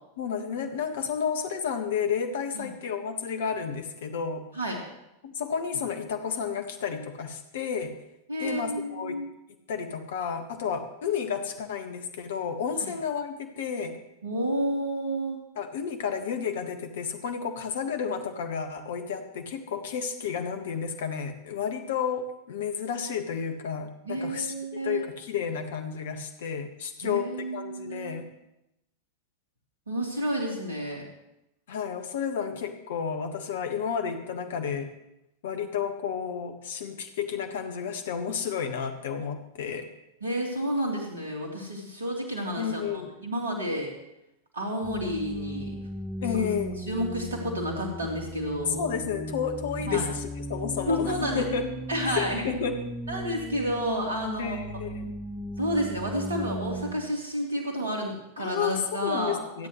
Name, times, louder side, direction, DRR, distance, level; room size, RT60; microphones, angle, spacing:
voice 1, 0.2-4.4 5.2-8.0 8.4-9.2 9.7-14.0 15.5-24.5 24.8-28.3 31.7-34.9 35.4-39.9 42.6-43.1 46.2-46.8 48.8-51.7 52.1-52.9 54.4-55.2 58.4-59.7, left 7 dB, 60° left, 6 dB, 1.6 m, -31 dB
voice 2, 8.3-9.3 12.8-12.9 14.2-15.4 24.0-25.0 27.0-28.3 29.9-31.0 40.2-43.9 44.5-45.7 46.3-46.4 46.8-48.8 49.8-50.0 50.9-51.4 51.9-52.4 53.1-54.6 55.6-59.7, equal, 70° right, 0 dB, 3.4 m, -30 dB
sound 1, 44.8-57.0, right 1 dB, 5° right, 1.7 m, -36 dB
26.0 x 10.0 x 3.2 m, 0.88 s
figure-of-eight pair, 90°, 0 cm